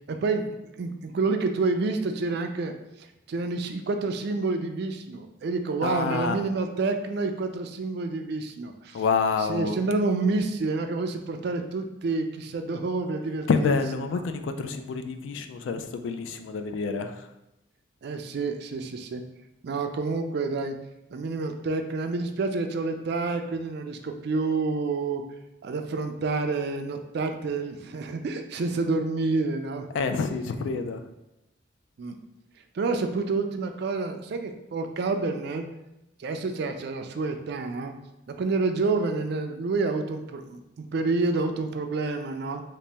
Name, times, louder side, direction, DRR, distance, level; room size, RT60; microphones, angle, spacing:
voice 1, 0.1-0.5 0.8-2.7 3.3-9.0 9.4-13.8 14.1-14.2 18.0-19.2 19.6-20.7 21.1-25.2 25.6-29.9 32.0-32.1 32.7-35.6 36.2-37.9 38.3-42.6, right 3 dB, 55° right, 6 dB, 0.3 m, -28 dB
voice 2, 5.8-6.4 8.9-9.7 13.5-17.2 29.9-31.0, left 4 dB, 75° left, 8 dB, 0.3 m, -27 dB
3.0 x 2.8 x 3.3 m, 0.92 s
head